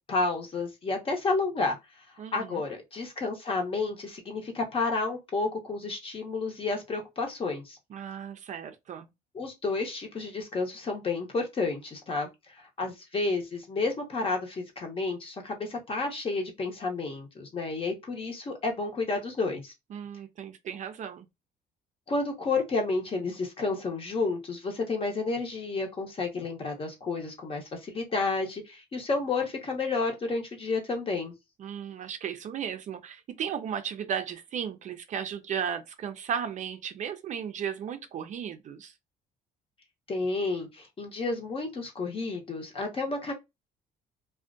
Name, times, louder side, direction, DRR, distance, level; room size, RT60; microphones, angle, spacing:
voice 1, 0.1-2.0 2.3-7.8 9.3-19.7 22.1-31.3 40.1-43.3, left 3 dB, 35° left, 0.9 m, -31 dB
voice 2, 2.2-2.6 7.9-9.1 19.9-21.3 31.6-38.9, right 8 dB, 45° right, 0.4 m, -35 dB
2.4 x 2.1 x 2.5 m
cardioid pair, 110°, 17 cm